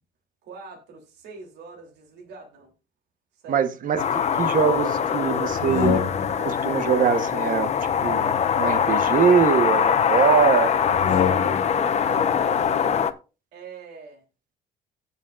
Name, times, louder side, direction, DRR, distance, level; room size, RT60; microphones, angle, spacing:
voice 1, 0.4-2.7 3.3-3.6 10.6-12.9 13.5-14.2, right 3 dB, 85° right, 3.3 m, -43 dB
voice 2, 3.5-6.0 6.4-10.7 11.2-11.3, right 7 dB, 55° right, 1.2 m, -23 dB
sound 1, 4.0-13.1, left 7 dB, 40° left, 1.0 m, -23 dB
sound 2, 5.5-6.6 7.8-9.5 10.8-11.8, left 7 dB, 85° left, 1.9 m, -28 dB
17.5 x 7.1 x 2.5 m
cardioid pair, 110°, 17 cm